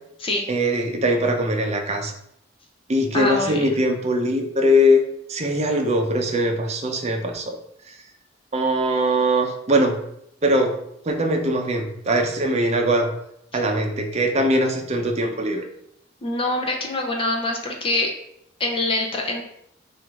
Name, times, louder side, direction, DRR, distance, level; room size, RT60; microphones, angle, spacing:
voice 1, 0.5-2.1 2.9-5.0 5.3-7.6 8.5-10.0 10.4-10.7 11.1-13.1 13.5-15.6, equal, 35° right, 3 dB, 0.6 m, -21 dB
voice 2, 3.1-3.7 16.2-18.2 18.6-19.4, left 2 dB, 30° left, 1 dB, 0.6 m, -24 dB
3.6 x 2.5 x 4.5 m, 0.74 s
head